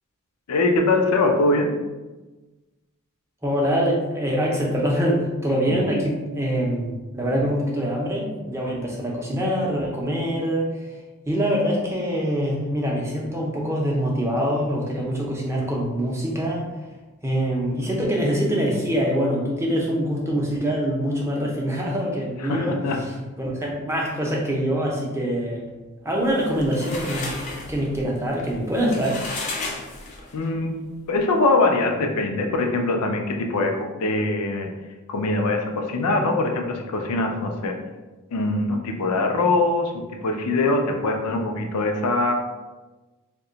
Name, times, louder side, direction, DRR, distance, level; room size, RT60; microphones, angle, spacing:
voice 1, 0.5-1.7 5.7-5.8 22.4-23.0 30.3-30.8 31.1-34.7 35.1-37.7 38.3-42.3, left 2 dB, 90° left, 3 dB, 0.5 m, -22 dB
voice 2, 3.4-10.7 11.3-16.7 17.2-23.1 23.4-25.6 26.0-27.3 27.7-29.2, equal, 10° right, -2 dB, 0.5 m, -24 dB
sound 1, 26.3-30.5, left 3 dB, 35° left, 0.5 m, -33 dB
2.8 x 2.2 x 3.8 m, 1.2 s
head